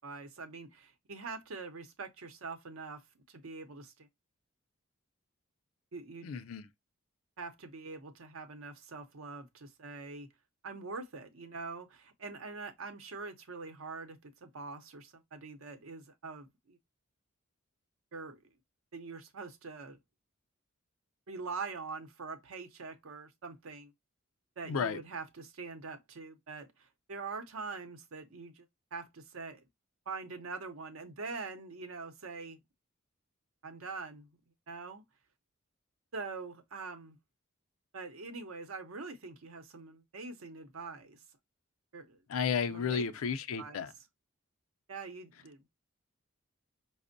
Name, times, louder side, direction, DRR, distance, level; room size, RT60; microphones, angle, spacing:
voice 1, 0.0-4.1 5.9-6.3 7.4-10.3 10.6-16.8 18.1-18.4 18.9-20.0 21.3-23.9 24.6-28.7 28.9-29.6 30.1-32.6 33.6-34.3 34.7-35.0 36.1-37.2 37.9-41.2 41.9-42.2 42.7-43.0 43.6-43.9 44.9-45.8, right 4 dB, 80° right, 0.7 m, -44 dB
voice 2, 6.2-6.7 24.6-25.0 42.3-43.9, left 6 dB, 80° left, 0.4 m, -33 dB
5.1 x 2.0 x 2.5 m
head